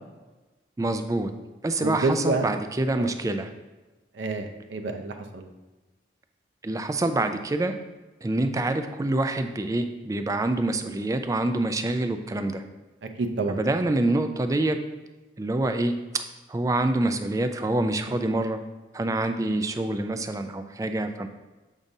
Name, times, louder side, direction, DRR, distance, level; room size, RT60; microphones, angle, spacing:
voice 1, 0.8-1.3 1.6-3.5 6.6-7.8 8.2-12.6 13.5-14.8 15.4-16.2 16.5-18.6 18.9-21.3, right 2 dB, 20° right, 8 dB, 0.3 m, -26 dB
voice 2, 1.8-2.5 3.0-3.1 4.2-5.5 13.2-13.6 18.1-18.2, right 3 dB, 85° right, 5 dB, 0.6 m, -28 dB
7.2 x 5.1 x 2.7 m, 1.2 s
head